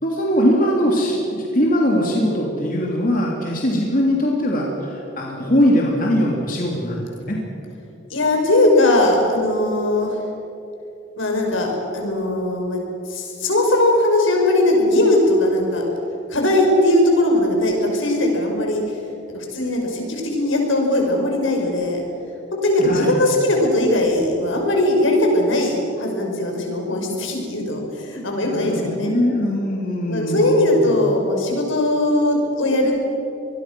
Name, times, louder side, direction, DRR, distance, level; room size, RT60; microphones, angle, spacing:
voice 1, 0.0-7.4 22.8-23.2 28.4-30.9, equal, 45° left, -2 dB, 3.2 m, -21 dB
voice 2, 8.1-10.2 11.2-11.7 11.9-12.8 13.1-15.8 16.3-18.8 19.3-22.0 22.6-29.1 30.1-32.9, left 1 dB, 80° left, 1 dB, 5.8 m, -19 dB
26.0 x 21.5 x 6.3 m, 2.9 s
head